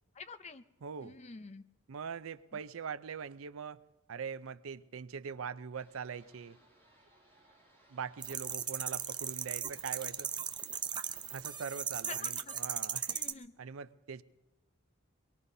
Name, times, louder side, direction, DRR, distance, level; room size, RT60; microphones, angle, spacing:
voice 1, 0.2-0.6 1.0-1.6 12.1-12.5 13.1-13.5, left 4 dB, 35° left, 0.6 m, -47 dB
voice 2, 0.8-1.2 1.9-3.8 4.1-6.6 7.9-10.3 11.3-13.2 13.6-14.2, right 6 dB, 85° right, 0.5 m, -42 dB
sound 1, 5.8-11.9, right 1 dB, 15° left, 5.2 m, -65 dB
sound 2, 8.2-13.3, right 8 dB, 20° right, 0.6 m, -37 dB
23.0 x 22.5 x 2.7 m
head